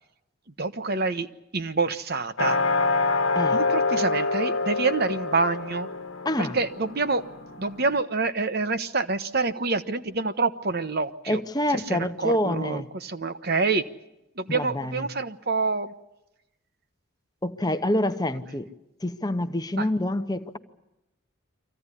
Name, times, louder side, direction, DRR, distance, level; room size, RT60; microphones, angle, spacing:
voice 1, 0.6-1.3 1.5-2.6 3.5-5.9 6.4-7.2 7.6-11.4 11.9-13.8 14.4-15.9 19.8-19.9, right 3 dB, 50° right, 11 dB, 1.0 m, -27 dB
sound 1, 2.4-8.0, left 3 dB, 70° left, 1.3 m, -26 dB
voice 2, 6.2-6.6 11.3-12.9 14.5-15.1 17.4-18.7 19.0-20.6, left 1 dB, 20° left, 9 dB, 0.9 m, -27 dB
24.5 x 15.5 x 9.9 m, 0.92 s
head